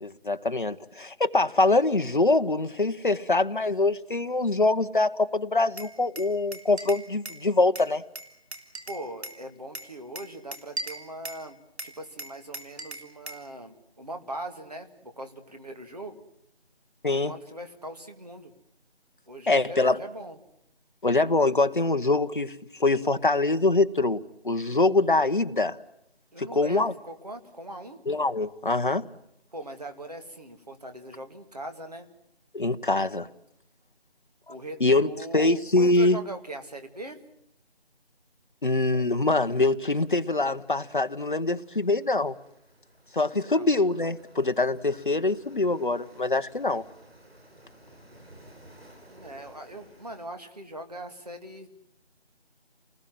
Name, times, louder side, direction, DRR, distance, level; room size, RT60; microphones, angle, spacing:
voice 1, 0.0-8.0 17.0-17.3 19.5-20.0 21.0-22.5 22.8-25.8 26.4-26.9 28.1-29.1 32.5-33.3 34.8-36.2 38.6-42.3 43.1-46.8, left 2 dB, 50° left, 1.1 m, -24 dB
Glass, 5.8-7.4 7.7-9.4 9.7-11.4 11.8-13.5, right 2 dB, 85° right, 3.5 m, -39 dB
voice 2, 8.9-11.6 11.8-16.2 17.1-18.5 19.3-20.4 26.3-28.0 29.5-32.1 34.5-37.2 43.5-43.7 49.1-51.7, right 1 dB, 40° right, 2.3 m, -40 dB
sound 1, 38.6-50.3, right 1 dB, 65° right, 5.9 m, -55 dB
29.0 x 20.0 x 7.6 m
figure-of-eight pair, 180°, 32 cm